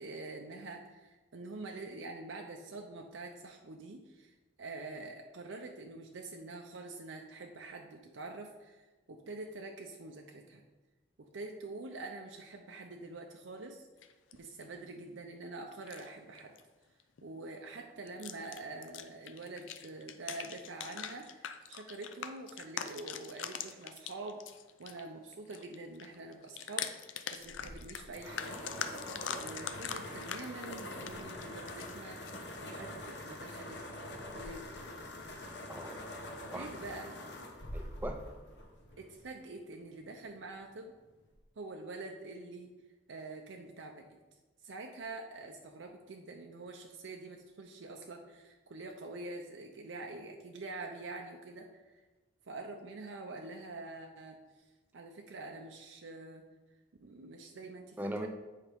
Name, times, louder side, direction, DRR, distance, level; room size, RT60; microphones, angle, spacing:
voice 1, 0.0-10.6 11.3-13.8 14.4-16.5 17.2-24.4 24.8-28.9 29.4-33.8 34.3-34.8 36.5-37.1 39.0-40.9 41.6-42.7 43.1-44.1 44.6-52.0 52.5-54.4 54.9-56.4 57.0-58.3, right 2 dB, 85° right, 2 dB, 0.6 m, -46 dB
sound 1, 14.0-14.6 15.7-16.1 16.4-16.6 17.0-17.2 18.1-25.0 25.3-32.4, left 8 dB, 90° left, 0.5 m, -43 dB
sound 2, 27.4-39.3, left 1 dB, 65° left, 1.0 m, -44 dB
voice 2, 35.7-36.7 37.7-38.2 58.0-58.3, right 1 dB, 10° right, 5 dB, 0.5 m, -40 dB
8.3 x 4.9 x 3.5 m, 1.2 s
head